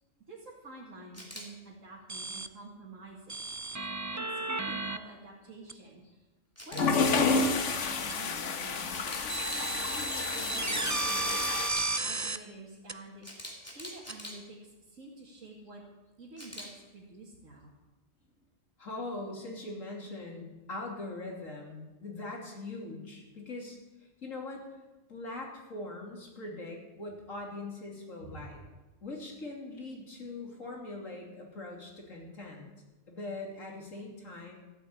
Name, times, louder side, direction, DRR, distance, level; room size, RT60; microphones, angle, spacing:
voice 1, 0.3-3.5 4.1-6.3 6.7-9.3 9.9-11.2 12.0-13.3 13.7-15.8 16.2-17.7 28.2-28.5, right 2 dB, 85° right, -5 dB, 2.6 m, -48 dB
Camera, 1.1-1.4 6.6-6.9 8.9-9.7 11.5-11.8 13.2-14.3 16.4-16.7, equal, 10° left, 2.8 m, -43 dB
sound 1, 2.1-2.5 3.3-5.0 5.7-5.8 6.9-7.8 8.1-8.2 9.3-12.4 12.9-13.0 14.1-14.2, right 3 dB, 25° right, 0.3 m, -34 dB
sound 2, 6.7-11.7, left 4 dB, 70° left, 1.4 m, -30 dB
voice 2, 18.8-23.8 24.2-24.6 25.1-28.6 29.0-32.6 33.1-34.5, left 2 dB, 85° left, -1 dB, 3.3 m, -41 dB
14.5 x 8.4 x 8.5 m, 1.1 s
omnidirectional pair, 1.3 m